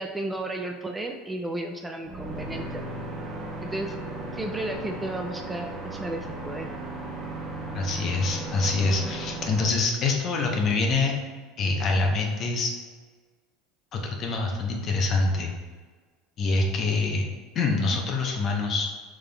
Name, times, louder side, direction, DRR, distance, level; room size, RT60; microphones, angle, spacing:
voice 1, 0.0-2.6 3.6-3.9 4.3-6.7, right 2 dB, 10° right, 4 dB, 0.4 m, -33 dB
sound 1, 2.0-9.7, right 2 dB, 35° right, 0.9 m, -36 dB
voice 2, 7.7-11.1 11.6-12.7 13.9-15.5 16.4-17.3 17.5-18.9, left 3 dB, 45° left, 2 dB, 0.8 m, -25 dB
5.3 x 3.5 x 2.2 m, 1.5 s
supercardioid pair, 105°, 0 cm